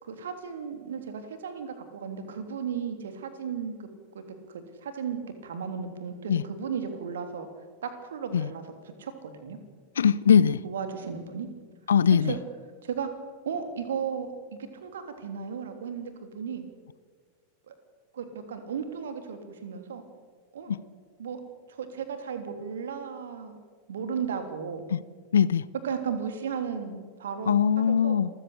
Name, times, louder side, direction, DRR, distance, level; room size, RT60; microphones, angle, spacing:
voice 1, 0.0-3.9 4.1-4.2 4.5-7.5 7.8-8.7 9.0-9.6 10.6-11.5 12.3-12.4 12.8-13.1 13.4-16.7 17.7-17.8 18.1-20.0 20.5-20.7 21.2-21.4 21.7-23.6 23.9-24.8 25.8-28.2, right 6 dB, 65° right, 3.3 m, -35 dB
voice 2, 10.0-10.6 11.9-12.3 20.7-20.8 24.9-25.0 25.3-25.6 27.5-28.3, left 7 dB, 65° left, 0.6 m, -21 dB
27.5 x 15.0 x 8.4 m
figure-of-eight pair, 90°, 0 cm